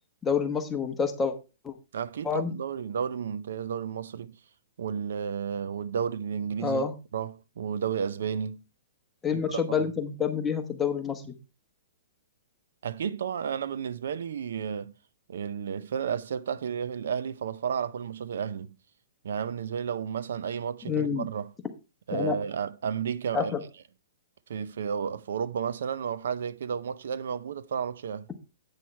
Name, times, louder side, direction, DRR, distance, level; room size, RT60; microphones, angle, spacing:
voice 1, 0.2-1.3 1.6-1.7 2.2-2.5 6.6-6.9 9.2-11.3 20.9-21.3 22.1-22.4 23.3-23.6, left 6 dB, 10° left, 1.0 m, -28 dB
voice 2, 1.9-4.3 4.8-6.8 7.1-8.6 9.3-9.9 12.8-14.9 15.3-18.7 19.2-21.5 22.1-23.5 24.5-28.3, right 7 dB, 70° right, 0.5 m, -32 dB
8.7 x 6.2 x 4.5 m
hypercardioid pair, 165°, 0 cm